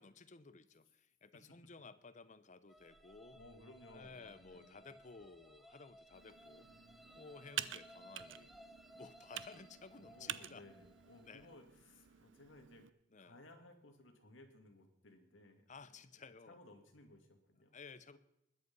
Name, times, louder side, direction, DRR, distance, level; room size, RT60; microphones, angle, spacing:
voice 1, 0.0-3.4 3.9-6.7 7.1-8.5 8.9-10.6 11.3-11.5 13.1-13.4 15.7-16.6 17.7-18.2, left 4 dB, 40° left, 14 dB, 0.8 m, -55 dB
sound 1, 2.7-11.6, equal, ahead, 0.9 m, -61 dB
voice 2, 3.3-5.0 6.7-7.6 9.9-12.9 13.2-16.0 16.4-17.9, left 1 dB, 85° left, 5 dB, 2.2 m, -60 dB
Computer keyboard, 6.1-12.9, right 11 dB, 70° right, 0.6 m, -49 dB
20.5 x 8.2 x 5.4 m, 0.83 s
head